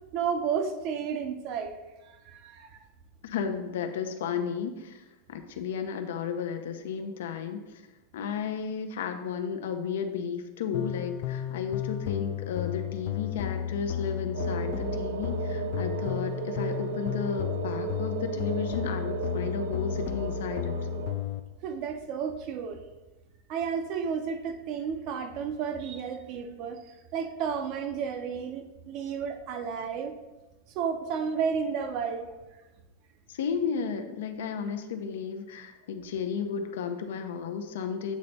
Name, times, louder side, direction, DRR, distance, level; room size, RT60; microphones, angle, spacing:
voice 1, 0.1-1.7 2.2-2.8 21.6-22.8 23.5-26.8 27.1-30.1 30.7-32.3, right 6 dB, 40° right, 7 dB, 0.6 m, -32 dB
voice 2, 3.2-5.0 5.3-7.8 8.1-20.8 33.3-38.2, left 6 dB, 80° left, 6 dB, 0.7 m, -33 dB
sound 1, 10.7-21.4, left 10 dB, 50° left, 0.4 m, -33 dB
sound 2, 14.3-21.1, right 9 dB, 85° right, 0.4 m, -35 dB
8.3 x 3.3 x 4.1 m, 1.1 s
supercardioid pair, 155°, 0 cm